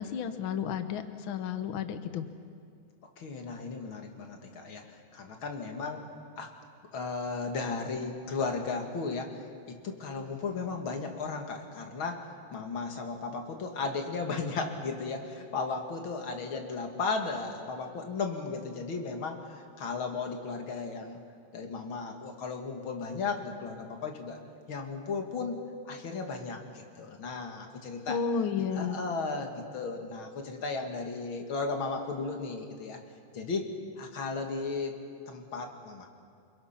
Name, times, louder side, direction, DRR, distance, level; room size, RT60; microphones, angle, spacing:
voice 1, 0.0-2.2 28.1-29.0, left 7 dB, 60° left, 10 dB, 1.3 m, -32 dB
voice 2, 3.2-6.0 6.4-6.5 6.9-21.2 21.5-24.4 24.7-25.6 25.9-28.2 28.8-33.0 33.3-33.7 34.0-35.0 35.3-36.1, left 4 dB, 45° left, 4 dB, 2.3 m, -35 dB
29.0 x 21.0 x 5.9 m, 2.3 s
omnidirectional pair, 3.6 m